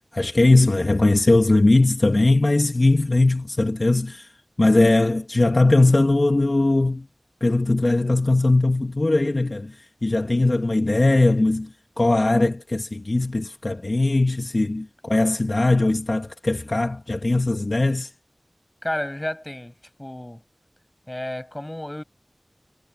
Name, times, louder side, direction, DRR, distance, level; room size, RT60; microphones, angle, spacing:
voice 1, 0.1-4.3 4.6-7.1 7.4-11.7 12.0-18.1, left 2 dB, 55° left, 1.2 m, -20 dB
voice 2, 18.8-20.4 21.1-22.0, left 1 dB, 25° left, 7.4 m, -31 dB
wide cardioid pair, 50°, 0 cm